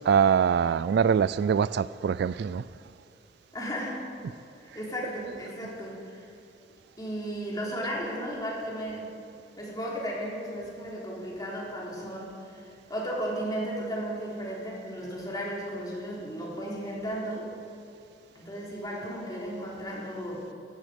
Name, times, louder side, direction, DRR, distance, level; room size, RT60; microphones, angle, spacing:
voice 1, 0.0-2.6, right 7 dB, 65° right, 19 dB, 0.3 m, -23 dB
voice 2, 3.5-4.1 4.6-6.3 7.0-9.1 9.6-17.5 18.3-20.5, equal, 20° left, -4 dB, 3.7 m, -35 dB
17.5 x 13.5 x 5.2 m, 2.6 s
head